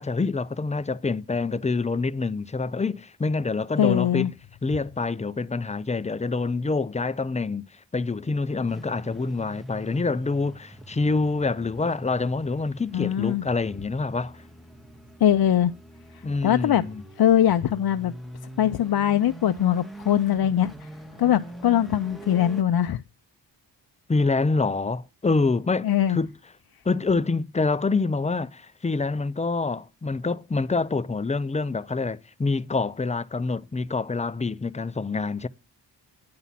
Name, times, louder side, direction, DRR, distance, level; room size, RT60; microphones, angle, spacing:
voice 1, 0.0-4.3 4.6-7.7 7.9-14.3 16.2-17.0 24.1-26.3 26.8-35.5, left 3 dB, 15° left, 0.5 m, -26 dB
voice 2, 3.8-4.3 12.9-13.4 15.2-15.7 16.1-16.8 17.2-18.1 18.6-20.9 21.2-23.0 25.8-26.2, left 10 dB, 60° left, 0.6 m, -22 dB
sound 1, 8.7-22.6, right 1 dB, ahead, 1.9 m, -43 dB
9.6 x 5.5 x 7.4 m
cardioid pair, 60°, 43 cm